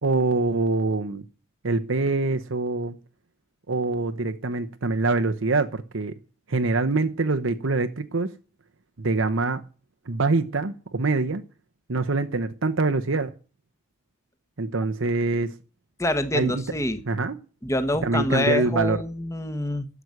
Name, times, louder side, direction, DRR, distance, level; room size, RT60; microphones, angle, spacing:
voice 1, 0.0-1.3 1.6-2.9 3.7-6.1 6.5-8.3 9.0-9.6 10.1-11.4 11.9-13.3 14.6-15.5 16.3-16.6 17.1-17.4 18.0-19.0, right 3 dB, 85° right, 1.0 m, -24 dB
voice 2, 16.0-17.0 17.6-19.9, left 1 dB, 15° left, 1.3 m, -26 dB
12.5 x 8.1 x 9.5 m
head